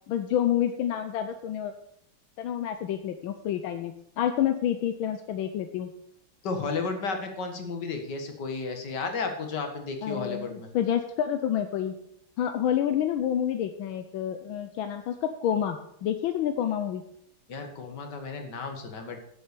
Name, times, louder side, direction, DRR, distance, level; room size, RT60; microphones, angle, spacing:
voice 1, 0.1-1.7 2.4-5.9 10.0-11.9 12.4-17.0, left 10 dB, 85° left, 8 dB, 1.6 m, -28 dB
voice 2, 6.4-10.7 17.5-19.2, left 4 dB, 60° left, 5 dB, 2.3 m, -33 dB
10.0 x 7.9 x 6.8 m, 0.73 s
omnidirectional pair, 2.1 m